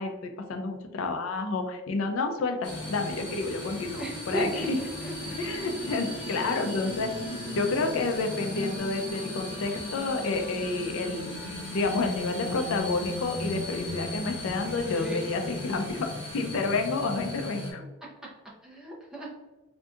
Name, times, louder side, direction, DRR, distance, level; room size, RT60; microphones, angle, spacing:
voice 1, 0.0-4.8 5.4-7.1 7.5-11.3 11.7-17.8, left 3 dB, 75° left, 5 dB, 0.4 m, -30 dB
sound 1, 2.6-17.7, left 1 dB, 55° left, 1.5 m, -36 dB
voice 2, 4.0-5.4 14.6-15.2 18.0-18.1 18.6-19.3, equal, 5° right, -5 dB, 0.6 m, -36 dB
3.6 x 2.6 x 2.4 m, 1.1 s
head